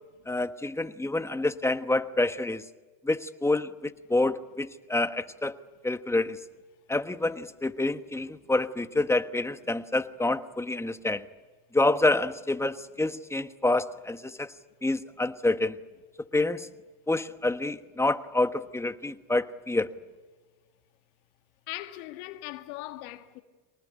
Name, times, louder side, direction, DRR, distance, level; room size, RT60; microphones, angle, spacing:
voice 1, 0.3-2.6 3.0-5.5 5.8-6.4 6.9-11.2 11.7-14.5 14.8-15.8 16.3-16.7 17.1-19.9, left 2 dB, 5° left, 1.1 m, -27 dB
voice 2, 21.7-23.4, left 16 dB, 90° left, 1.6 m, -39 dB
24.0 x 19.5 x 10.0 m
supercardioid pair, 105°, 41 cm